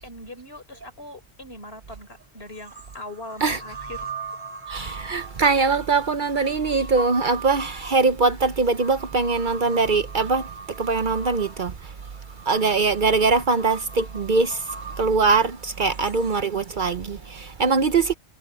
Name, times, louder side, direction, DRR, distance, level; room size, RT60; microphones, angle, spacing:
voice 1, 0.0-4.1 15.9-16.0, left 1 dB, 65° left, 5.1 m, -40 dB
sound 1, 1.9-2.0 2.5-16.4, right 4 dB, 25° left, 3.1 m, -39 dB
voice 2, 4.7-11.9 12.5-14.7 15.0-18.1, right 4 dB, 50° right, 0.9 m, -22 dB
omnidirectional pair, 1.1 m